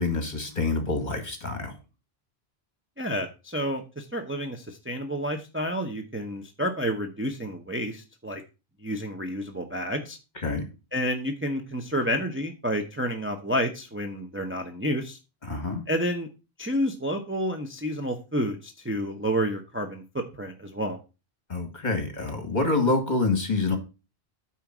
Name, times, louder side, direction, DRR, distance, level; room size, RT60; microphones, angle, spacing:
voice 1, 0.0-1.7 10.4-10.6 15.5-15.9 21.5-23.8, left 3 dB, 40° left, 6 dB, 2.3 m, -26 dB
voice 2, 3.0-8.4 8.8-10.2 10.9-15.2 15.9-16.3 16.6-21.0, equal, 10° right, 4 dB, 0.9 m, -30 dB
9.1 x 4.5 x 6.0 m, 0.29 s
omnidirectional pair, 1.1 m